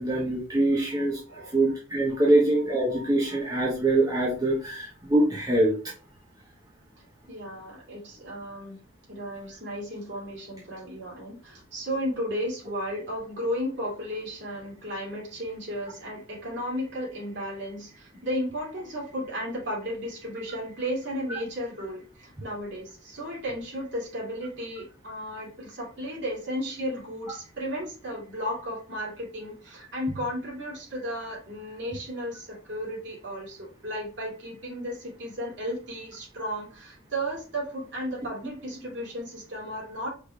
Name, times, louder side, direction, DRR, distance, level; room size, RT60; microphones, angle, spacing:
voice 1, 0.0-5.7, right 1 dB, 20° right, -4 dB, 1.0 m, -24 dB
voice 2, 7.3-8.8 9.1-40.1, equal, 55° right, -4 dB, 2.5 m, -34 dB
5.0 x 4.2 x 2.3 m, 0.36 s
head